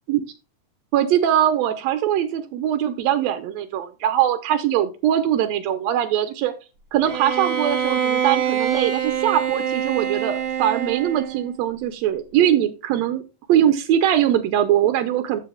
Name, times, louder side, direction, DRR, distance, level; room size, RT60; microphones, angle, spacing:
voice 1, 0.9-6.5 6.9-13.2 13.5-15.4, right 11 dB, 75° right, 9 dB, 1.7 m, -21 dB
Bowed string instrument, 7.1-11.5, right 8 dB, 55° right, 2.3 m, -25 dB
14.5 x 4.9 x 2.2 m, 0.29 s
omnidirectional pair, 3.9 m